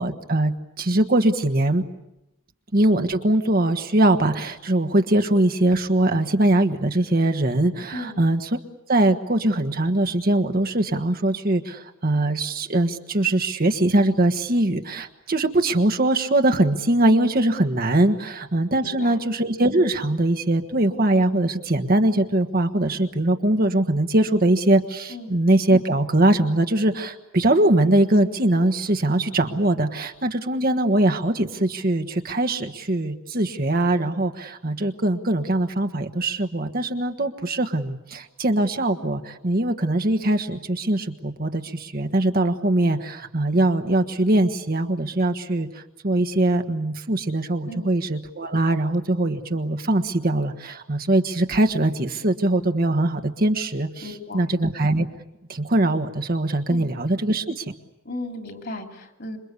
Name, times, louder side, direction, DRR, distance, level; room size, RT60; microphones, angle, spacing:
voice 1, 0.0-1.8 2.7-8.5 8.9-45.7 46.0-54.0 54.3-55.1 55.5-57.6, right 1 dB, 45° right, 6 dB, 1.4 m, -22 dB
voice 2, 18.8-19.2 25.1-25.4 47.7-47.9 54.0-54.5 56.7-56.9 58.0-59.4, left 1 dB, 50° left, 5 dB, 3.2 m, -35 dB
27.5 x 23.0 x 8.3 m, 0.89 s
head